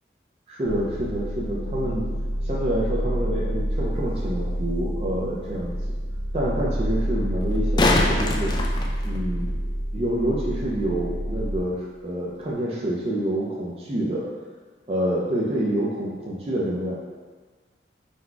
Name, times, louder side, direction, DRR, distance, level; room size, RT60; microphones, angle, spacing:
voice 1, 0.5-2.0 2.4-6.0 6.3-8.5 9.0-9.6 9.9-14.3 14.9-16.9, right 1 dB, 35° right, -5 dB, 0.5 m, -27 dB
sound 1, 0.6-11.6, equal, 75° left, 1.2 m, -28 dB
sound 2, 4.6-4.7 7.4-9.6 12.4-12.5, left 2 dB, 25° left, 0.3 m, -24 dB
4.0 x 2.2 x 4.5 m, 1.4 s
head